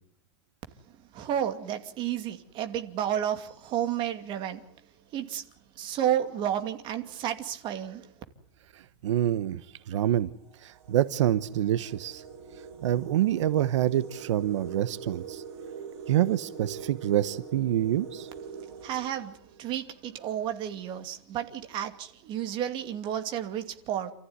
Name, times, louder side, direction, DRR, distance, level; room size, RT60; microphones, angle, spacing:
voice 1, 0.9-4.6 5.1-5.4 5.8-8.1 18.8-24.1, right 10 dB, 35° right, 2.6 m, -31 dB
sound 1, 8.4-8.7 9.5-9.6 10.1-19.8, right 6 dB, 60° right, 6.5 m, -44 dB
voice 2, 8.7-10.3 10.6-12.2 12.8-15.4 16.1-18.3, right 12 dB, 85° right, 1.1 m, -27 dB
28.5 x 14.5 x 9.7 m
supercardioid pair, 160°, 15 cm